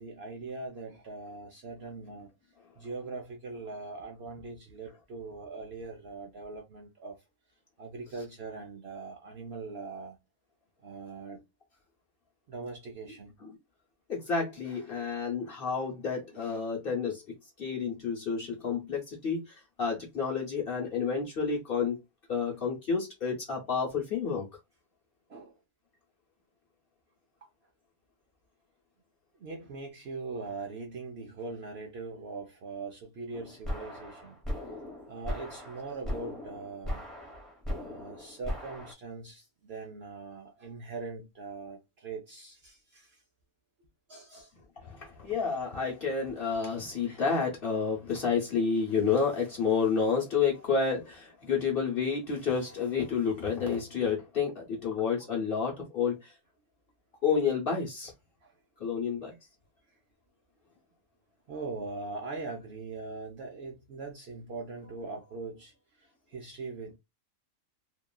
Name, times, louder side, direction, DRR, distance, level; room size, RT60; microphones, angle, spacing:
voice 1, 0.0-2.3 2.8-7.2 7.8-10.2 10.8-11.4 12.5-13.3 25.3-25.5 29.4-34.4 35.1-37.1 37.8-43.2 44.1-44.5 50.5-50.6 52.6-53.1 58.4-58.6 59.9-60.0 61.5-67.0, right 3 dB, 60° right, 0.7 m, -41 dB
voice 2, 14.1-17.2 17.6-22.0 22.3-24.5 44.8-56.3 57.2-58.1 58.8-59.3, left 5 dB, 50° left, 0.8 m, -30 dB
sound 1, 33.3-38.9, left 1 dB, ahead, 0.8 m, -38 dB
2.9 x 2.3 x 2.2 m
omnidirectional pair, 1.5 m